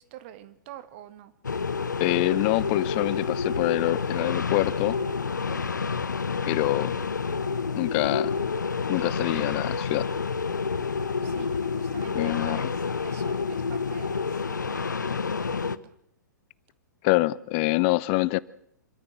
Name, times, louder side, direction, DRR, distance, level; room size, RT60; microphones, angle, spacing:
voice 1, 0.0-1.3 11.2-15.9, right 13 dB, 40° right, 12 dB, 1.8 m, -47 dB
sound 1, 1.4-15.8, left 5 dB, 75° left, 0.9 m, -29 dB
voice 2, 2.0-5.0 6.4-6.9 7.8-8.4 8.9-10.1 12.1-12.6 17.0-18.4, left 21 dB, 35° left, 22 dB, 0.7 m, -25 dB
26.5 x 13.5 x 7.5 m, 0.75 s
figure-of-eight pair, 110°, 10 cm